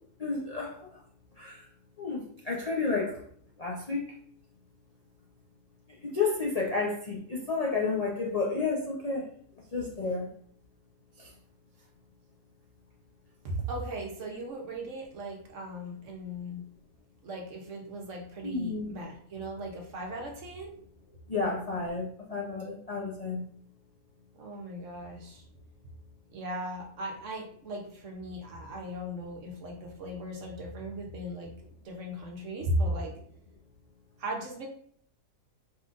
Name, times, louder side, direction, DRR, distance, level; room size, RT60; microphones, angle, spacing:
voice 1, 0.2-1.0 1.4-1.7 2.0-3.2 3.6-4.0 5.9-9.3 9.7-10.3 11.2-11.3 18.4-19.0 21.3-23.4, left 4 dB, 50° left, -3 dB, 0.4 m, -31 dB
voice 2, 13.4-16.6 17.2-20.7 24.4-25.4 26.3-31.5 31.8-33.2 34.2-34.7, right 1 dB, 55° right, 0 dB, 1.0 m, -37 dB
4.4 x 3.8 x 2.5 m, 0.62 s
omnidirectional pair, 1.7 m